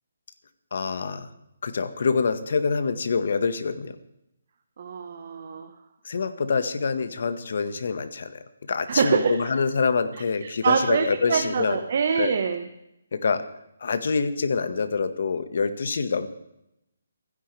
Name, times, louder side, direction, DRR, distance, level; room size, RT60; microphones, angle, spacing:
voice 1, 0.7-1.3 1.6-3.9 6.0-8.4 8.7-11.8 12.2-12.4 13.1-13.4 13.8-16.3, left 5 dB, 60° left, 10 dB, 1.7 m, -26 dB
voice 2, 4.8-5.7 8.9-9.6 10.4-12.7, right 6 dB, 50° right, 4 dB, 1.5 m, -25 dB
28.0 x 10.5 x 3.5 m, 0.84 s
figure-of-eight pair, 150°, 0 cm